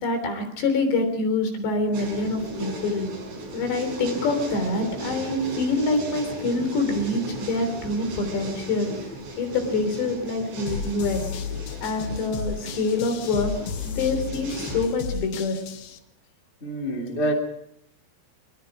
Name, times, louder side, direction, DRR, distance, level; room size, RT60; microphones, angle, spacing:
voice 1, 0.0-3.1 3.5-8.9 9.4-11.2 11.8-13.5 13.8-15.6, left 3 dB, 60° left, 6 dB, 5.5 m, -26 dB
sound 1, 1.9-14.9, right 2 dB, 85° right, 8.9 m, -37 dB
sound 2, 10.7-16.0, left 7 dB, 85° left, 1.8 m, -33 dB
voice 2, 16.6-17.3, right 1 dB, 20° left, 2 dB, 2.2 m, -26 dB
23.0 x 23.0 x 5.0 m, 0.75 s
omnidirectional pair, 5.8 m